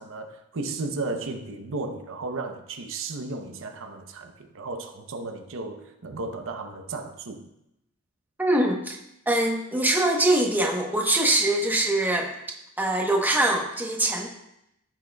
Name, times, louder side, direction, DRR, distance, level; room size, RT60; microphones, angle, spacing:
voice 1, 0.0-7.5, right 3 dB, 65° right, 6 dB, 0.7 m, -34 dB
voice 2, 8.4-9.0 9.3-12.3 12.8-14.3, right 1 dB, 10° right, 1 dB, 1.0 m, -23 dB
14.5 x 6.5 x 2.3 m, 0.82 s
head